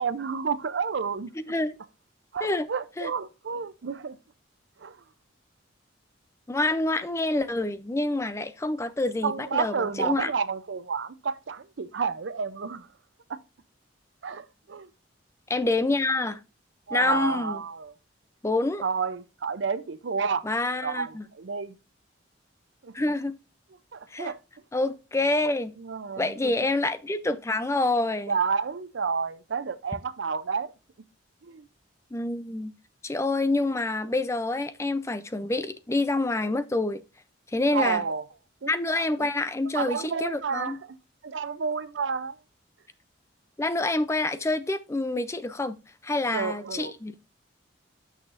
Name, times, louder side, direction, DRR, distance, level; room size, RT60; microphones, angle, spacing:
voice 1, 0.0-1.3 2.3-4.2 4.8-5.0 9.2-12.9 13.3-13.4 14.2-14.9 16.9-17.9 18.8-20.4 20.8-21.8 22.8-22.9 23.9-24.4 25.8-26.5 28.3-30.7 31.4-31.7 37.7-38.2 38.6-39.3 39.7-41.0 41.2-42.4 46.3-46.9, right 5 dB, 70° right, 0.5 m, -30 dB
voice 2, 6.5-10.3 15.5-16.4 16.9-17.6 18.4-18.8 20.4-21.2 22.9-23.3 24.1-24.3 24.7-25.7 26.2-28.3 32.1-32.7 33.0-37.0 37.5-38.0 38.6-40.8 43.6-45.7 46.0-47.2, left 2 dB, 15° left, 0.4 m, -27 dB
8.7 x 6.5 x 2.5 m
head